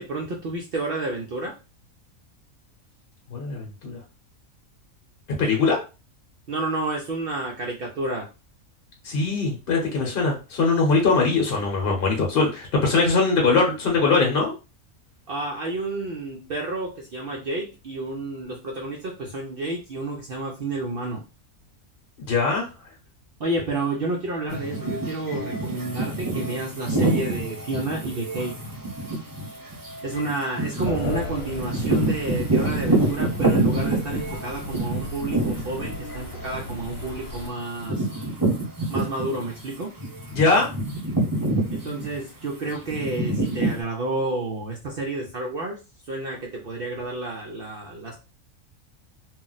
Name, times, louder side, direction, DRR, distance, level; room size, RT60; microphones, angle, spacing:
voice 1, 0.0-1.5 6.5-8.3 15.3-21.2 23.4-28.6 30.0-38.1 38.9-39.9 41.7-45.8 46.1-48.1, right 2 dB, 60° right, 0 dB, 0.6 m, -30 dB
voice 2, 3.3-4.0 5.4-5.8 9.0-14.5 22.3-22.7 40.3-40.7, left 4 dB, 50° left, 0 dB, 0.9 m, -21 dB
sound 1, 24.5-39.6 40.0-43.8, right 2 dB, 15° right, 0.9 m, -27 dB
sound 2, 30.8-37.5, left 1 dB, 75° left, 1.1 m, -36 dB
2.4 x 2.1 x 3.8 m, 0.30 s
omnidirectional pair, 1.5 m